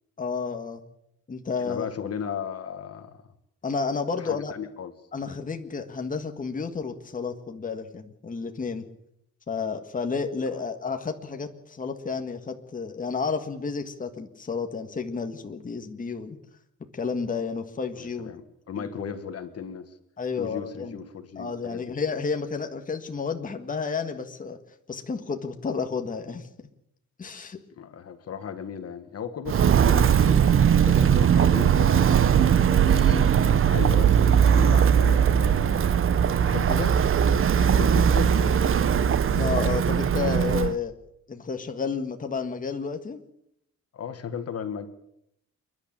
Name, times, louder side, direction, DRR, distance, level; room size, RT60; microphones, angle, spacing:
voice 1, 0.2-0.8 1.3-1.9 3.6-4.5 5.1-8.8 9.5-16.4 16.9-18.3 18.8-18.9 20.2-21.0 21.3-24.6 24.9-26.5 27.2-27.6 32.8-33.6 39.3-40.9 41.3-43.2, left 5 dB, 25° left, 5 dB, 1.7 m, -31 dB
voice 2, 1.6-3.2 4.2-4.9 10.5-10.6 18.0-19.9 20.4-22.0 27.7-33.0 33.6-35.9 36.4-37.0 37.5-38.8 43.9-44.9, left 7 dB, 55° left, 9 dB, 1.7 m, -36 dB
Walk footsteps, 29.5-40.7, right 8 dB, 45° right, 0.8 m, -20 dB
28.5 x 11.0 x 8.9 m, 0.77 s
cardioid pair, 145°, 30 cm